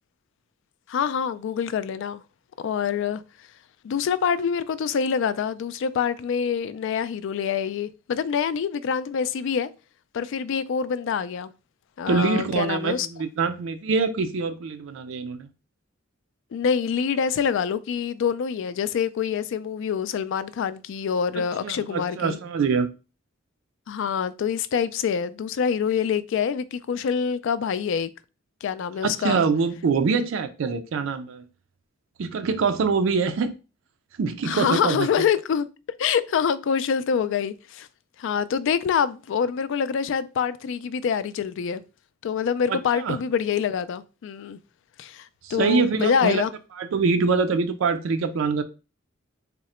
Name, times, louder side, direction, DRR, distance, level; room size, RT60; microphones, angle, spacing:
voice 1, 0.9-2.2 2.6-3.2 3.8-9.7 10.1-11.5 12.0-13.1 16.5-22.4 23.9-28.1 28.6-29.4 34.4-35.7 36.0-37.9 38.2-41.8 42.2-44.6 45.0-46.5, left 7 dB, 65° left, 0.3 m, -25 dB
voice 2, 12.1-15.5 21.6-22.9 29.0-31.4 32.2-33.5 34.2-35.1 42.7-43.2 45.4-46.4 46.8-48.6, right 5 dB, 70° right, 0.4 m, -24 dB
3.7 x 2.1 x 4.2 m
head